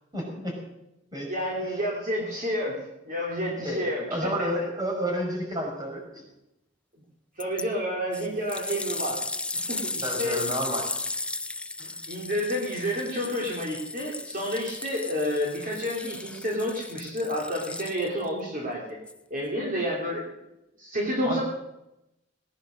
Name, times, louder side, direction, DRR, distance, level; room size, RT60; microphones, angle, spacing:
voice 1, 0.1-0.6 1.1-1.3 1.7-1.8 3.2-3.3 3.6-3.8 4.1-6.2 10.0-10.9 11.8-12.0 21.2-21.4, equal, 20° right, 0 dB, 5.4 m, -31 dB
voice 2, 1.3-4.5 7.4-9.2 9.5-10.4 11.8-19.0 19.3-20.3 20.8-21.4, equal, 45° right, -3 dB, 3.2 m, -30 dB
sound 1, 7.4-7.6 8.1-18.3 19.1-19.2, left 3 dB, 5° left, 0.4 m, -35 dB
18.5 x 10.0 x 6.4 m, 0.89 s
head